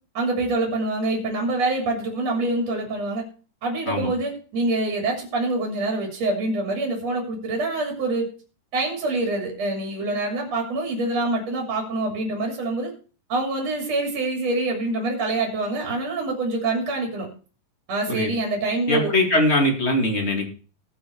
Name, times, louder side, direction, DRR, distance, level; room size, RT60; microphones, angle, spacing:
voice 1, 0.1-3.2 3.6-8.3 8.7-12.9 13.3-17.3 17.9-19.1, right 2 dB, 45° right, 1 dB, 3.5 m, -25 dB
voice 2, 18.9-20.5, left 1 dB, 20° left, 1 dB, 1.8 m, -21 dB
18.0 x 6.0 x 4.6 m, 0.38 s
omnidirectional pair, 4.8 m